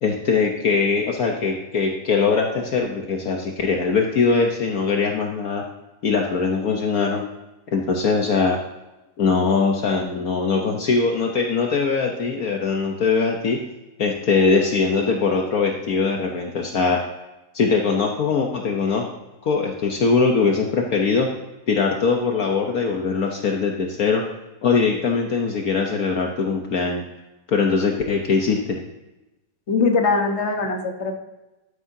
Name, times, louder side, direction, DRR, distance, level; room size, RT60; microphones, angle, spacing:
voice 1, 0.0-5.6 6.0-7.2 7.7-8.6 9.2-13.6 14.0-17.0 17.5-19.1 19.4-21.3 21.7-24.2 24.6-27.0 27.5-28.8, left 4 dB, 60° left, 1 dB, 1.3 m, -21 dB
voice 2, 29.7-31.2, left 4 dB, 45° left, 3 dB, 1.4 m, -21 dB
12.5 x 9.8 x 2.7 m, 1.0 s
omnidirectional pair, 1.8 m